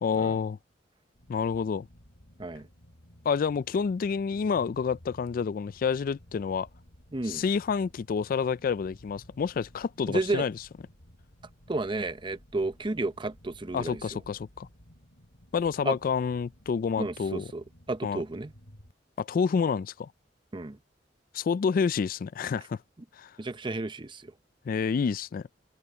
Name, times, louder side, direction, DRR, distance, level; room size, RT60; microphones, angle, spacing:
voice 1, 0.0-0.6 1.3-1.9 3.3-6.7 7.3-10.5 13.7-14.7 15.5-17.5 18.0-18.2 19.2-20.1 21.3-22.8 23.2-23.3 24.7-25.4, left 6 dB, 50° left, 0.3 m, -28 dB
sound 1, 1.1-18.9, equal, 70° left, 3.5 m, -55 dB
voice 2, 7.1-7.4 10.1-10.5 11.7-14.0 15.8-16.0 17.0-18.5 20.5-20.8 23.4-24.3, right 2 dB, 25° right, 0.7 m, -32 dB
head